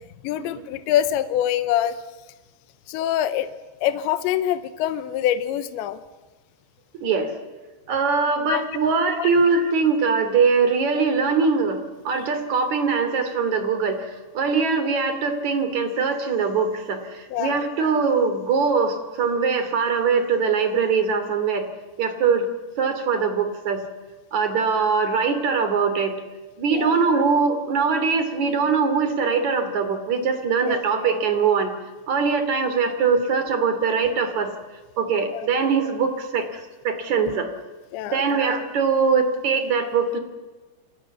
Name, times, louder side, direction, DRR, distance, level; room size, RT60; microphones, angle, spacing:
voice 1, 0.2-2.0 2.9-3.5 3.8-6.0 8.5-8.6 9.2-9.3 11.0-11.1 17.3-17.6 26.7-27.0 30.7-30.8 35.3-35.5 37.9-38.2, left 11 dB, 75° left, 11 dB, 3.2 m, -25 dB
voice 2, 7.0-7.3 7.9-21.7 22.0-22.5 22.8-23.8 24.3-26.2 26.6-31.7 32.1-34.5 35.0-37.5 38.1-40.2, right 5 dB, 45° right, 9 dB, 3.6 m, -22 dB
30.0 x 24.5 x 7.3 m, 1.2 s
omnidirectional pair, 5.5 m